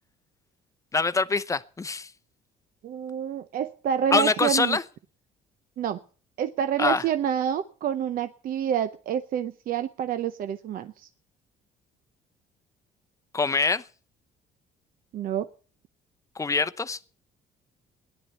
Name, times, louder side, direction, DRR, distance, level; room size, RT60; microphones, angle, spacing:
voice 1, 0.9-2.1 4.1-4.8 6.8-7.0 13.3-13.8 16.4-17.0, left 4 dB, 20° left, 0.8 m, -24 dB
voice 2, 2.8-4.8 5.8-6.0 6.4-11.1 15.1-15.5, right 9 dB, 55° right, 0.7 m, -28 dB
17.0 x 10.5 x 6.8 m
cardioid pair, 110°, 17 cm